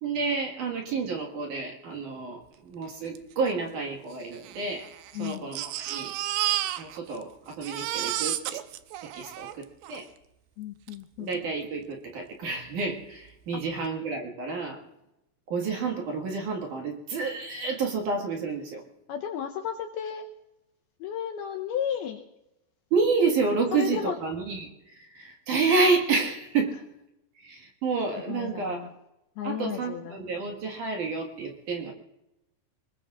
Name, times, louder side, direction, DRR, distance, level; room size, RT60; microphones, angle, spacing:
voice 1, 0.0-4.9 5.2-6.1 6.8-8.6 9.0-10.1 11.2-14.8 15.5-18.8 22.9-26.8 27.4-28.9 29.4-31.9, right 4 dB, 55° right, 1 dB, 2.6 m, -29 dB
Crying sobbing, 3.2-3.3 3.5-3.6 4.3-7.2 7.5-10.1 10.9-11.0 11.3-11.4, right 13 dB, 80° right, 2.9 m, -32 dB
voice 2, 5.1-5.5 10.6-11.4 13.5-13.6 19.1-20.3 21.0-22.2 23.7-24.2 28.3-28.9 29.4-30.2, left 9 dB, 80° left, 3 dB, 2.4 m, -33 dB
25.5 x 21.5 x 2.5 m, 0.90 s
omnidirectional pair, 5.3 m